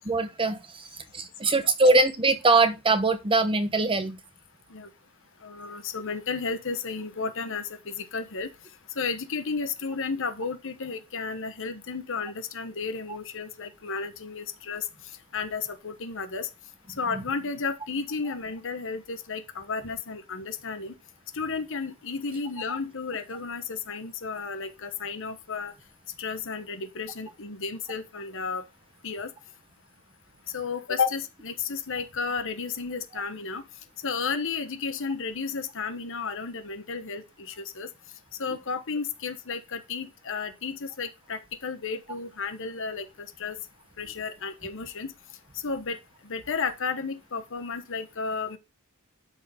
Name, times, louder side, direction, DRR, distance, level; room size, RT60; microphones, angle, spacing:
voice 1, 0.1-0.9 1.1-4.2 17.1-17.2, right 3 dB, 25° right, 0.9 m, -22 dB
voice 2, 5.4-8.5 8.9-14.8 15.3-16.5 17.0-20.9 21.3-25.7 26.2-28.6 29.0-29.3 30.5-33.6 34.0-37.9 38.4-43.6 44.0-45.1 45.6-46.0 46.2-48.6, left 5 dB, 60° left, 1.1 m, -33 dB
12.5 x 4.3 x 3.6 m
head